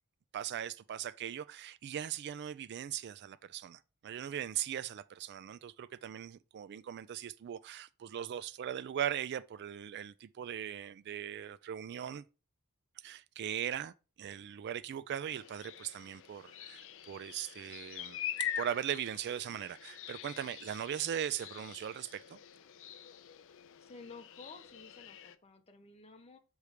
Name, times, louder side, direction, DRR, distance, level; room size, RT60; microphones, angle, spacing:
voice 1, 0.3-12.2 13.0-22.4, right 10 dB, 50° right, 0.3 m, -39 dB
sound 1, 15.3-25.4, left 10 dB, 60° left, 0.4 m, -44 dB
voice 2, 23.8-26.4, left 4 dB, 30° left, 0.8 m, -53 dB
6.8 x 3.2 x 4.9 m
head